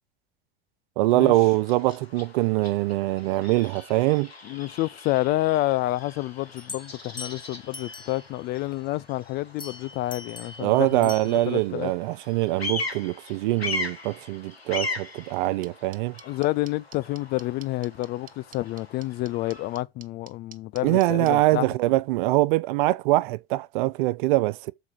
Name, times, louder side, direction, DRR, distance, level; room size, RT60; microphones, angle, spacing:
Bird vocalization bird call bird song, 1.0-19.8, left 3 dB, 85° left, 1.7 m, -40 dB
voice 1, 1.0-4.3 10.6-16.2 20.8-24.7, right 18 dB, 55° right, 0.5 m, -23 dB
voice 2, 4.4-11.9 16.2-21.7, left 17 dB, 35° left, 0.4 m, -29 dB
sound 1, 6.6-8.4 9.6-11.6, left 4 dB, 15° left, 1.2 m, -42 dB
sound 2, 15.6-21.3, right 9 dB, 25° right, 0.8 m, -46 dB
7.0 x 4.8 x 6.3 m
figure-of-eight pair, 75°, 30 cm